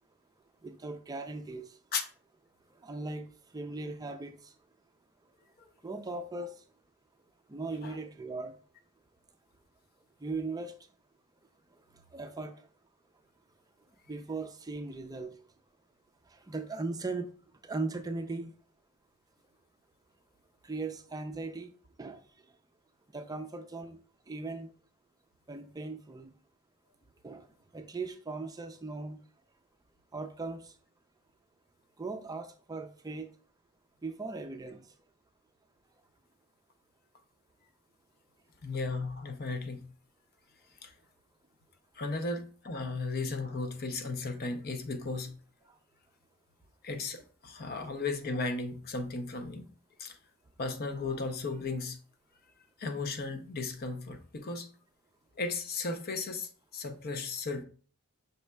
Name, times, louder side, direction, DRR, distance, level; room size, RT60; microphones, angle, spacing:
voice 1, 0.6-1.6 2.8-3.3 3.5-4.5 5.8-6.5 7.5-8.5 10.2-10.7 12.1-12.5 14.1-15.3 16.3-17.3 17.6-18.5 20.6-21.7 22.0-22.2 23.1-24.0 24.3-24.7 25.5-26.3 27.2-27.5 27.7-29.2 30.1-30.7 32.0-33.3 34.0-34.8, right 3 dB, 15° right, 0.4 m, -38 dB
voice 2, 38.6-39.9 40.8-40.9 42.0-45.3 46.8-49.7 50.0-50.2 50.6-52.0 52.8-54.7 55.4-57.6, left 3 dB, 45° left, 0.6 m, -35 dB
5.5 x 4.1 x 2.2 m
head